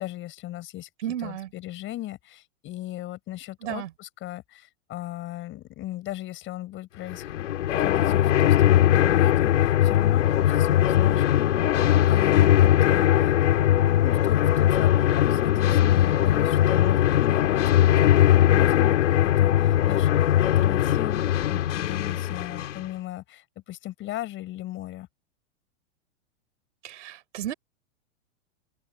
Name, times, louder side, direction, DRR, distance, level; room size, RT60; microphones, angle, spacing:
voice 1, 0.0-0.9 1.2-11.3 12.0-25.1, left 15 dB, 35° left, 7.3 m, -38 dB
voice 2, 1.0-1.5 3.6-3.9 26.8-27.5, right 11 dB, 75° right, 4.7 m, -33 dB
sound 1, 7.1-22.9, left 12 dB, 75° left, 3.7 m, -20 dB
open air
hypercardioid pair, 135°, 36 cm